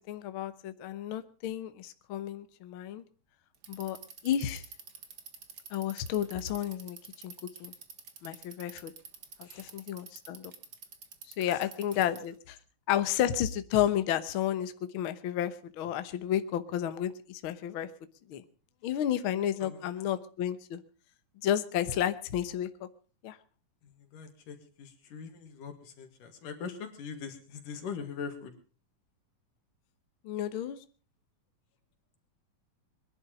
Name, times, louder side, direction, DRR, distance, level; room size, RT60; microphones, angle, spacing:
voice 1, 0.1-3.0 3.7-4.0 4.2-4.6 5.7-7.3 7.6-7.7 8.2-8.9 9.4-10.5 11.4-12.6 12.9-17.9 18.3-18.4 18.8-20.8 21.4-22.9 23.2-23.4 30.2-30.8, left 11 dB, 60° left, 11 dB, 1.4 m, -32 dB
Bicycle, 3.5-12.4, right 6 dB, 40° right, 1.6 m, -48 dB
voice 2, 11.4-12.1 19.6-19.9 21.8-21.9 23.8-28.6, left 6 dB, 85° left, 6 dB, 4.0 m, -42 dB
22.0 x 11.5 x 5.0 m, 0.38 s
omnidirectional pair, 3.6 m